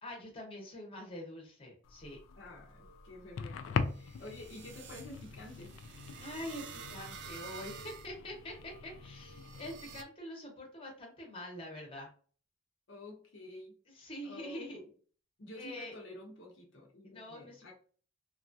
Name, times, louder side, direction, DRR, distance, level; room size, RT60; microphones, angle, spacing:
voice 1, 0.0-2.2 6.2-12.1 13.9-14.8 15.5-15.9 17.0-17.7, left 1 dB, 30° left, -1 dB, 1.0 m, -45 dB
sound 1, 1.8-10.0, left 5 dB, 85° left, 0.3 m, -42 dB
voice 2, 2.4-5.7 12.9-14.9 15.4-17.7, left 1 dB, 65° left, -2 dB, 0.7 m, -50 dB
sound 2, 2.5-10.0, right 7 dB, 60° right, 0.4 m, -51 dB
2.9 x 2.4 x 2.6 m, 0.42 s
head